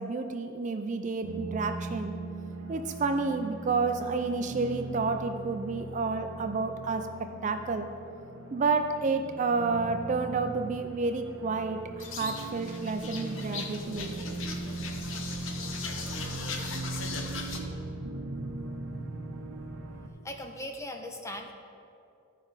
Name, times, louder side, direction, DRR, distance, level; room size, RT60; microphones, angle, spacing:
voice 1, 0.0-2.1 2.7-7.9 8.5-14.1, right 4 dB, 35° right, 6 dB, 0.4 m, -30 dB
sound 1, 1.2-20.1, right 2 dB, 80° right, 0.7 m, -39 dB
sound 2, 12.0-17.6, left 4 dB, 65° left, 0.8 m, -39 dB
voice 2, 20.2-21.5, left 1 dB, 15° left, 4 dB, 0.6 m, -39 dB
13.5 x 5.0 x 4.0 m, 2.6 s
head